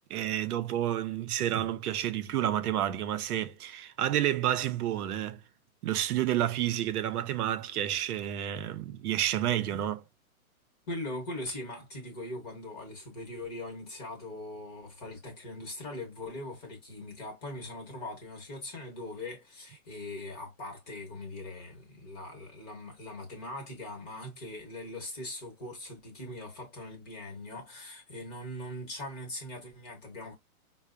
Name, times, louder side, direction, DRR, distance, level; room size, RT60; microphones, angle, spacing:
voice 1, 0.1-5.4 5.8-10.0, right 12 dB, 90° right, 0.6 m, -30 dB
voice 2, 10.9-30.3, left 1 dB, 25° left, 0.9 m, -41 dB
4.5 x 2.0 x 2.4 m
hypercardioid pair, 165°, 43 cm